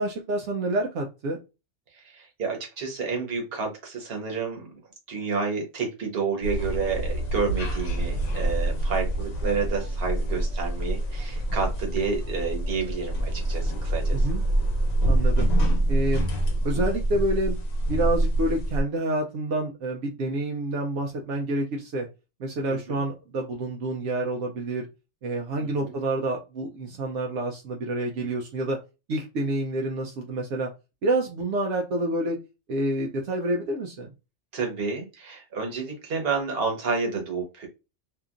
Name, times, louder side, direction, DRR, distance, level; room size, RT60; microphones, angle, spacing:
voice 1, 0.0-1.4 14.1-14.4 15.0-15.5 15.9-16.3 16.6-17.6 17.9-22.1 22.4-24.9 25.2-28.8 29.1-30.7 31.0-32.4 32.7-34.1, right 1 dB, 80° right, 1 dB, 0.9 m, -28 dB
voice 2, 2.1-4.7 5.1-14.2 22.7-23.0 25.6-25.9 34.5-37.7, right 4 dB, 55° right, 2 dB, 1.1 m, -30 dB
sound 1, 6.4-18.8, right 1 dB, 85° left, 1.1 m, -26 dB
2.8 x 2.5 x 2.4 m, 0.27 s
omnidirectional pair, 1.2 m